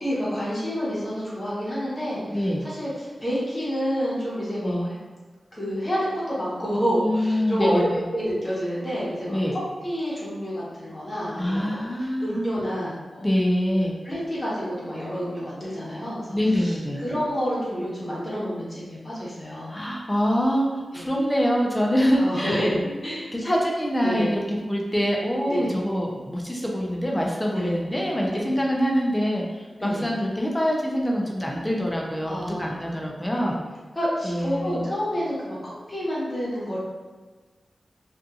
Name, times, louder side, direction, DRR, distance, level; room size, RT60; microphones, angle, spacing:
voice 1, 0.0-5.0 5.5-11.8 12.2-13.3 14.0-19.7 20.9-21.1 22.2-23.3 24.0-24.3 25.5-25.8 27.5-27.8 28.4-28.5 29.8-30.1 32.2-32.7 33.4-33.5 33.9-36.8, equal, 30° left, -8 dB, 1.1 m, -29 dB
voice 2, 2.3-2.6 4.6-4.9 7.0-8.0 9.3-9.6 11.4-12.4 13.2-13.9 16.3-17.0 19.7-22.9 23.3-24.4 24.7-33.6 34.2-34.9, equal, 15° left, -2 dB, 0.5 m, -25 dB
2.6 x 2.5 x 2.4 m, 1.3 s
wide cardioid pair, 70°, 0 cm